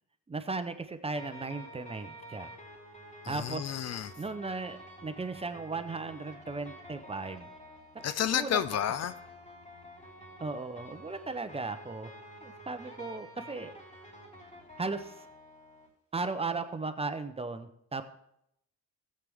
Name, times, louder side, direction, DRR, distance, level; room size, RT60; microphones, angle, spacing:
voice 1, 0.3-2.5 3.3-3.7 4.2-7.5 7.9-8.6 10.4-12.1 12.4-13.7 14.8-15.1 16.1-18.0, right 3 dB, 20° right, 10 dB, 0.7 m, -36 dB
sound 1, 1.1-15.9, equal, 25° left, 3.2 m, -49 dB
voice 2, 3.2-4.1 8.0-9.1, left 10 dB, 55° left, 13 dB, 0.6 m, -31 dB
14.5 x 7.7 x 3.6 m, 0.79 s
cardioid pair, 90°, 30 cm